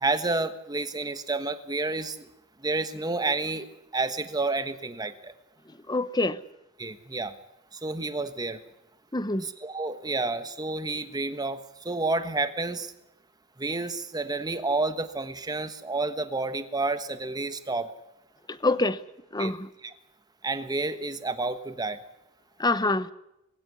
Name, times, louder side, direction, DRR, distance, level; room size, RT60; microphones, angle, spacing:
voice 1, 0.0-2.2 2.6-3.7 3.9-5.3 6.8-7.3 7.8-8.6 9.4-12.9 13.6-17.9 19.4-19.5 20.4-22.0, right 3 dB, 20° right, 10 dB, 1.3 m, -30 dB
voice 2, 5.9-6.4 9.1-9.5 18.5-19.0 19.3-19.7 22.6-23.1, left 2 dB, 20° left, 15 dB, 0.9 m, -26 dB
21.0 x 16.5 x 9.6 m, 0.87 s
head